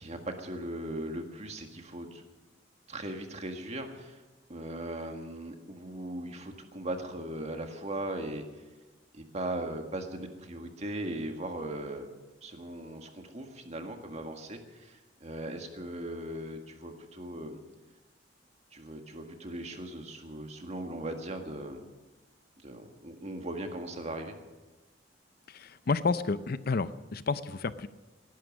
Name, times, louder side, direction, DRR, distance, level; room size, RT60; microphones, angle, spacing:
voice 1, 0.0-2.2 2.9-4.2 4.5-8.4 9.1-12.1 12.4-17.6 18.7-21.8 22.6-24.3, right 1 dB, 40° right, 4 dB, 1.8 m, -38 dB
voice 2, 25.5-27.9, left 4 dB, 55° left, 14 dB, 0.6 m, -30 dB
18.5 x 11.5 x 6.4 m, 1.2 s
head